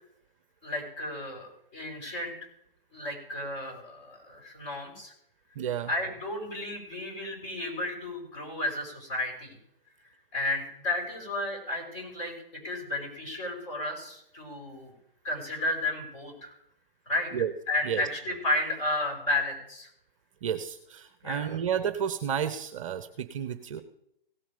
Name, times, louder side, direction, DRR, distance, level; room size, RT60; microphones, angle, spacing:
voice 1, 0.6-2.3 2.9-5.1 5.9-9.6 10.3-12.3 12.6-14.9 15.2-16.6 17.1-17.3 17.7-19.9 21.2-21.5, left 2 dB, 35° left, -1 dB, 5.5 m, -32 dB
voice 2, 5.6-5.9 17.3-17.5 17.8-18.0 20.4-23.8, right 8 dB, 35° right, 11 dB, 0.8 m, -31 dB
17.0 x 7.2 x 5.2 m, 0.74 s
hypercardioid pair, 145°, 29 cm